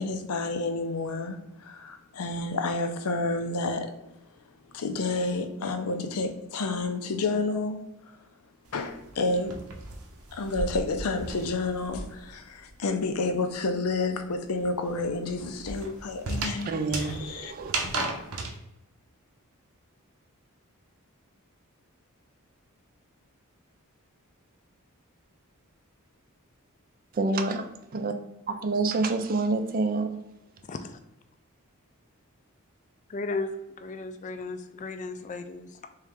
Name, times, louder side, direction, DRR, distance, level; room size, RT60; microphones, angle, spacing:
voice 1, 0.0-3.9 4.7-7.8 8.7-9.6 10.3-17.5, left 3 dB, 90° left, 6 dB, 0.6 m, -30 dB
sound 1, 8.7-12.4 12.7-18.5, right 2 dB, 85° right, 0.8 m, -36 dB
voice 2, 16.7-17.7 27.2-28.1 28.5-30.2, right 3 dB, 40° right, 7 dB, 0.4 m, -28 dB
voice 3, 30.7-31.0 33.1-33.5 33.8-35.9, left 3 dB, 35° left, 9 dB, 0.3 m, -35 dB
3.7 x 3.1 x 3.4 m, 0.93 s
head